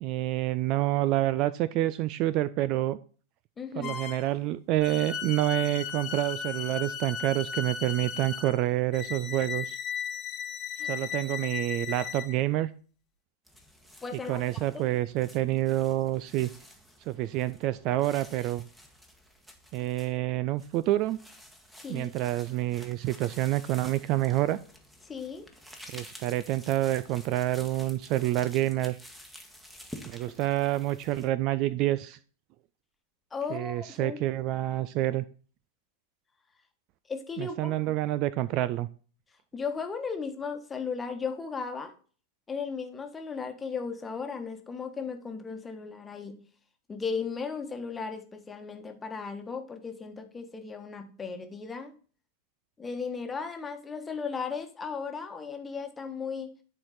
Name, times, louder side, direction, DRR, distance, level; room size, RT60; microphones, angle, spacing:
voice 1, 0.0-3.0 3.8-9.8 10.8-12.7 14.3-16.5 17.1-18.6 19.7-21.2 21.9-24.6 25.9-29.0 30.1-32.2 33.5-35.2 37.4-38.9, right 15 dB, 40° right, 16 dB, 0.4 m, -28 dB
voice 2, 3.6-3.9 10.8-10.9 14.0-14.4 14.7-14.8 21.8-22.1 25.0-25.5 33.3-34.2 37.1-37.9 39.5-41.9 42.5-46.4 46.9-51.9 52.8-56.5, left 5 dB, 15° left, 6 dB, 1.3 m, -36 dB
sound 1, 3.8-4.3 4.8-12.3, left 8 dB, 30° left, 1.1 m, -36 dB
sound 2, 13.5-31.3, equal, 5° right, 1.3 m, -51 dB
10.5 x 4.7 x 4.0 m, 0.39 s
figure-of-eight pair, 90°, 0 cm